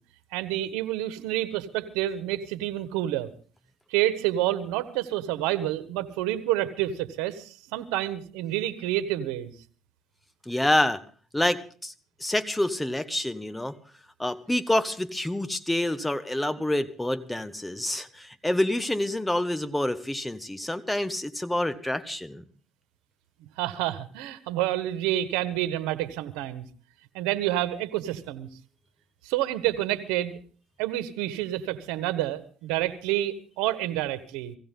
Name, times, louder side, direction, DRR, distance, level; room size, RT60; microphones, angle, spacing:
voice 1, 0.3-3.3 3.9-9.5 23.6-26.7 27.1-28.5 29.2-30.4 30.8-34.6, right 14 dB, 90° right, 12 dB, 1.4 m, -28 dB
voice 2, 10.5-11.0 11.3-11.9 12.2-13.8 14.2-22.4, left 1 dB, 5° left, 11 dB, 1.2 m, -27 dB
17.5 x 16.0 x 3.8 m, 0.42 s
cardioid pair, 100°, 0 cm